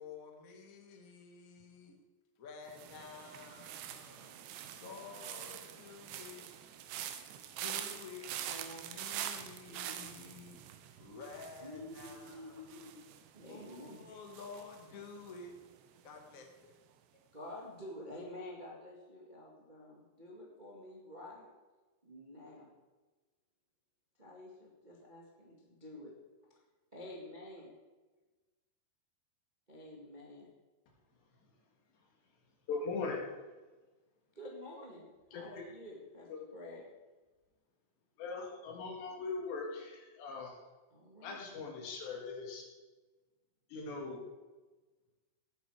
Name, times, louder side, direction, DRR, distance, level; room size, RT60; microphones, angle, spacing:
voice 1, 0.0-2.0 2.4-4.3 4.7-6.5 7.6-10.6 11.0-12.9 13.5-15.5 16.0-16.8, left 4 dB, 60° left, 2 dB, 0.8 m, -51 dB
sound 1, 2.7-15.7 16.0-16.4, right 10 dB, 85° right, 3.0 m, -45 dB
voice 2, 9.6-10.0 11.6-14.1 17.3-21.5 22.0-22.7 24.2-26.1 26.9-27.7 29.7-30.5 34.3-35.1 35.3-36.8 40.9-41.4, left 1 dB, 30° right, -3 dB, 0.8 m, -49 dB
voice 3, 32.7-33.3 35.3-35.6 36.3-36.7 38.2-40.6 41.2-42.7 43.7-44.2, left 4 dB, 80° left, -1 dB, 4.5 m, -40 dB
18.0 x 9.3 x 4.9 m, 1.2 s
omnidirectional pair, 4.9 m